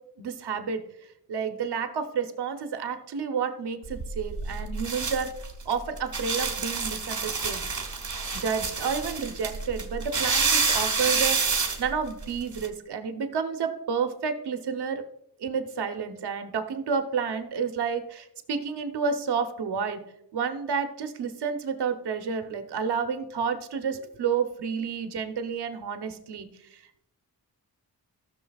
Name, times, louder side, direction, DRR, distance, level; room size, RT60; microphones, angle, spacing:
voice 1, 0.2-0.8 1.3-5.3 5.6-7.6 8.2-11.4 11.8-15.0 15.4-20.0 20.3-27.0, right 6 dB, 85° right, 7 dB, 0.9 m, -30 dB
sound 1, 3.9-12.7, right 4 dB, 50° right, 1.7 m, -28 dB
13.5 x 6.7 x 2.4 m, 0.78 s
cardioid pair, 50°, 39 cm